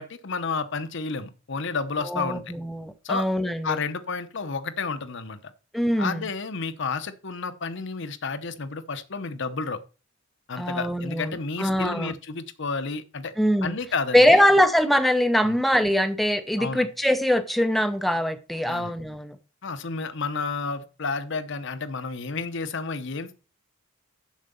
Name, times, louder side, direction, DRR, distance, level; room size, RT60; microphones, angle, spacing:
voice 1, 0.0-2.4 3.0-3.3 3.6-5.5 6.0-9.8 10.5-13.3 13.6-14.4 15.4-15.6 16.6-16.9 18.7-18.9 19.6-23.4, left 4 dB, 65° left, 0.9 m, -31 dB
voice 2, 2.0-3.8 5.7-6.2 10.6-12.1 13.4-13.8 14.1-19.4, equal, ahead, 0.6 m, -22 dB
7.4 x 6.5 x 6.8 m
head